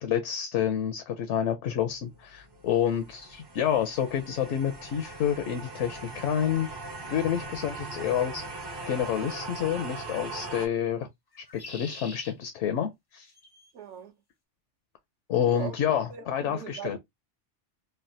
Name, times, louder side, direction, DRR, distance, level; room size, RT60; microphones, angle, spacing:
voice 1, 0.0-6.7 7.1-8.4 8.9-11.1 11.4-13.3 15.3-17.0, left 9 dB, 80° left, 0.9 m, -28 dB
sound 1, 1.8-10.7, right 3 dB, 35° right, 0.4 m, -40 dB
sound 2, 6.7-6.8 9.2-9.6 11.3-12.3 13.3-13.7, left 3 dB, 35° left, 0.4 m, -45 dB
voice 2, 13.7-14.1 15.5-15.7 16.1-17.0, right 9 dB, 75° right, 0.9 m, -39 dB
3.3 x 2.2 x 2.5 m
omnidirectional pair, 1.2 m